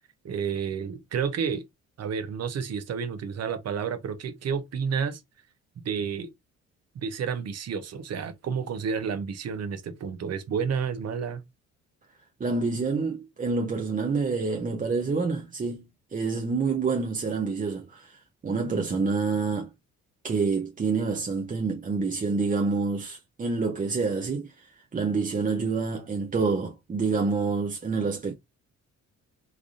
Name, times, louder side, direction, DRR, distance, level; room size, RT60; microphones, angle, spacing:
voice 1, 0.2-1.6 2.0-5.2 5.8-6.3 6.9-11.4, right 6 dB, 55° right, 0.9 m, -30 dB
voice 2, 12.4-15.8 16.1-19.7 20.2-28.3, right 4 dB, 25° right, 0.7 m, -27 dB
3.3 x 2.5 x 3.6 m
cardioid pair, 90°, 30 cm